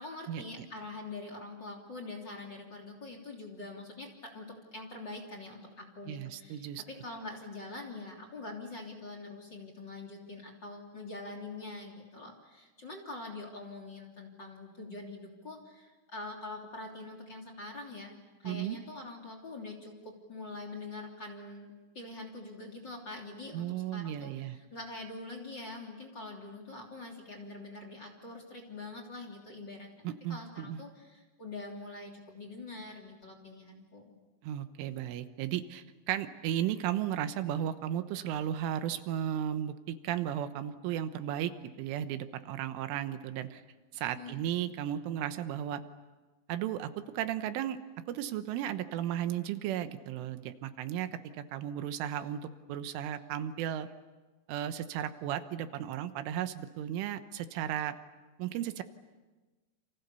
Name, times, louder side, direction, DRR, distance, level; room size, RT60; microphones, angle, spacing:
voice 1, 0.0-18.1 18.4-23.7 23.9-29.9 30.3-34.1 44.1-44.4, left 2 dB, 25° left, 3 dB, 3.2 m, -44 dB
voice 2, 6.1-6.8 18.5-18.8 23.5-24.6 30.1-30.8 34.4-41.5 41.8-43.6 43.9-45.8 46.5-47.8 48.1-52.4 52.7-53.9 54.5-58.0 58.4-58.8, right 11 dB, 85° right, 10 dB, 3.7 m, -35 dB
30.0 x 28.5 x 6.9 m, 1.2 s
omnidirectional pair, 5.5 m